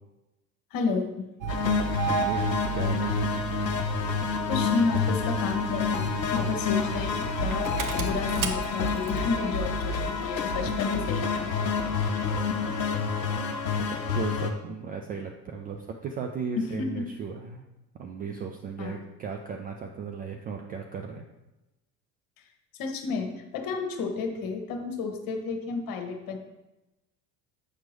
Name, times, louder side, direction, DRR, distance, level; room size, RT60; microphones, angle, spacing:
voice 1, 0.7-1.2 4.5-11.5 16.6-17.0 18.8-19.0 22.8-26.4, left 4 dB, 45° left, 5 dB, 1.2 m, -31 dB
Engine starting, 1.4-9.3, right 8 dB, 40° right, 0.8 m, -34 dB
sound 1, 1.5-14.5, left 5 dB, 90° left, 0.7 m, -28 dB
voice 2, 2.1-3.2 13.9-17.7 18.0-21.2, right 6 dB, 20° right, 3 dB, 0.3 m, -36 dB
8.0 x 5.9 x 3.1 m, 0.99 s
figure-of-eight pair, 65°, 49 cm